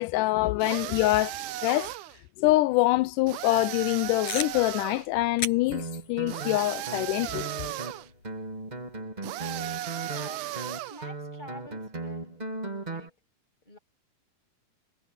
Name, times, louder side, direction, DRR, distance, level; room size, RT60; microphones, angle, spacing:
voice 1, 0.0-1.9 2.4-7.5, left 18 dB, 85° left, 1.8 m, -25 dB
sound 1, 0.6-2.2 3.3-5.1 6.3-8.1 9.2-11.1, right 14 dB, 75° right, 2.0 m, -36 dB
sound 2, 4.3-9.0, left 4 dB, 60° left, 7.7 m, -40 dB
Guitar, 5.7-13.1, right 2 dB, 35° right, 0.6 m, -37 dB
voice 2, 10.0-10.5 10.9-12.4 12.8-13.2 13.7-13.8, equal, 10° left, 7.4 m, -47 dB
omnidirectional pair, 4.1 m